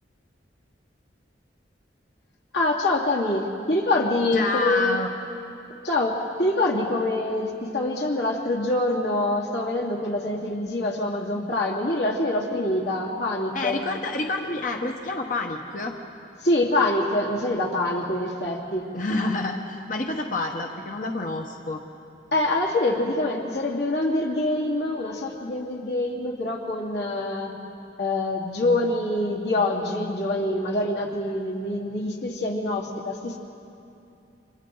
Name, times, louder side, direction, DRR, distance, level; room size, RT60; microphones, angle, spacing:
voice 1, 2.5-5.0 5.8-13.8 16.4-18.8 22.3-27.5 28.0-33.4, left 2 dB, 70° left, -2 dB, 2.8 m, -25 dB
voice 2, 4.3-5.1 12.5-12.8 13.5-16.0 18.9-21.8, left 2 dB, 45° left, 2 dB, 1.1 m, -28 dB
30.0 x 26.0 x 3.9 m, 2.7 s
head